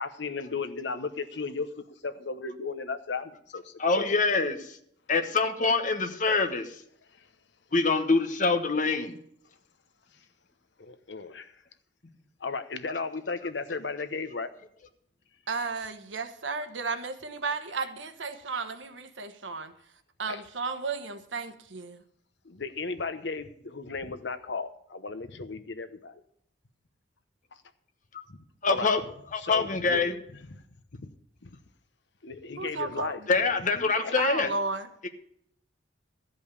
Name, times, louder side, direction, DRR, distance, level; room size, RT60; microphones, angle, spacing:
voice 1, 0.0-4.1 10.8-11.5 12.4-14.5 20.3-20.4 22.4-26.2 28.3-28.4 28.7-28.9 29.4-30.0 30.5-30.6 31.0-31.1 31.4-31.6 32.2-33.2 34.0-34.2, left 4 dB, 65° left, 1.0 m, -35 dB
voice 2, 3.8-4.7 5.1-6.7 7.7-9.1 28.6-29.0 29.3-30.1 33.3-34.5, left 4 dB, 45° left, 1.2 m, -25 dB
voice 3, 15.5-19.7 20.2-22.0 32.6-33.2 34.2-34.9, right 4 dB, 85° right, 1.2 m, -33 dB
14.0 x 5.4 x 8.4 m
head